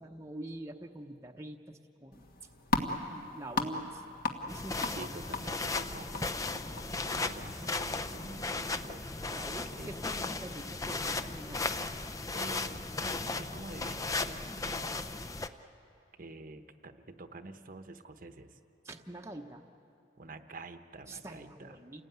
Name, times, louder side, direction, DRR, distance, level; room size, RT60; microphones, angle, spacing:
voice 1, 0.0-2.3 3.1-4.0 4.5-5.0 9.3-11.7 18.8-19.6 21.1-22.0, right 1 dB, 15° right, 2 dB, 0.9 m, -45 dB
sound 1, 2.1-8.9, left 3 dB, 50° left, 1.7 m, -38 dB
sound 2, 4.5-15.5, left 3 dB, 15° left, 0.6 m, -36 dB
voice 2, 5.0-9.0 9.7-10.0 12.3-15.1 16.2-18.6 20.2-21.8, right 2 dB, 45° right, 8 dB, 1.0 m, -48 dB
29.0 x 18.5 x 9.3 m, 2.8 s
head